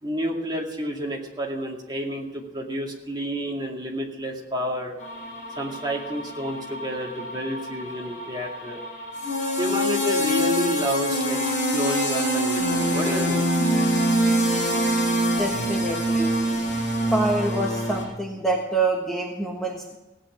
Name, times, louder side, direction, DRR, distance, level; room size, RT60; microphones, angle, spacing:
voice 1, 0.0-4.9 5.6-8.8 9.6-13.4, equal, 25° right, -1 dB, 2.3 m, -30 dB
sound 1, 5.0-18.0, equal, 40° left, 6.7 m, -25 dB
voice 2, 15.4-16.3 17.1-20.0, right 2 dB, ahead, -1 dB, 1.3 m, -26 dB
17.0 x 8.9 x 7.4 m, 1.0 s
head